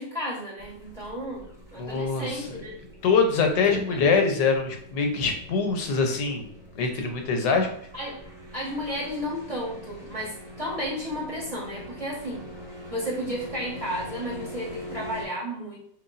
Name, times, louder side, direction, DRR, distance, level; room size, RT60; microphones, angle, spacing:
voice 1, 0.0-2.8 3.5-4.0 7.9-8.2 8.5-15.8, equal, 25° right, -6 dB, 1.1 m, -33 dB
sound 1, 0.6-15.2, equal, 5° right, 0.8 m, -44 dB
voice 2, 1.8-2.3 3.0-6.5 6.7-7.7, left 5 dB, 75° left, 4 dB, 1.4 m, -23 dB
6.2 x 2.5 x 2.5 m, 0.65 s
omnidirectional pair, 1.9 m